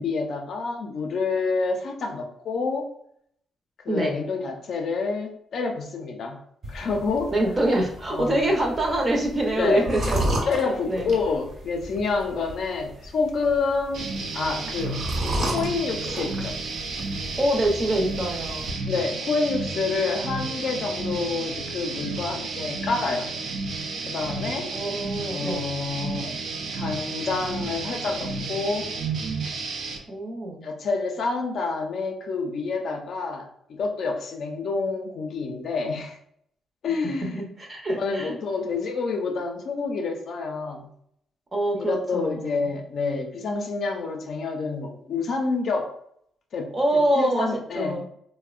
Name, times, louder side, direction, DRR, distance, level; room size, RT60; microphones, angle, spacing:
voice 1, 0.0-2.9 3.9-6.4 6.7-7.3 8.1-8.5 9.6-9.9 10.5-15.0 15.5-16.6 18.9-23.3 24.0-24.7 25.3-26.3 26.7-28.9 30.6-36.2 36.8-37.4 38.0-40.9 41.8-45.9 46.5-48.0, left 4 dB, 60° left, 2 dB, 0.4 m, -28 dB
sound 1, 6.6-18.7, right 1 dB, 45° right, 1.0 m, -33 dB
voice 2, 7.3-10.3 10.6-11.1 17.4-18.7 24.7-25.6 30.1-30.7 37.0-38.4 41.5-42.7 46.7-48.1, right 1 dB, 25° right, 1 dB, 0.7 m, -25 dB
sound 2, 13.9-30.0, right 3 dB, 70° right, 0.4 m, -32 dB
3.3 x 2.1 x 2.4 m, 0.68 s
cardioid pair, 115°, 0 cm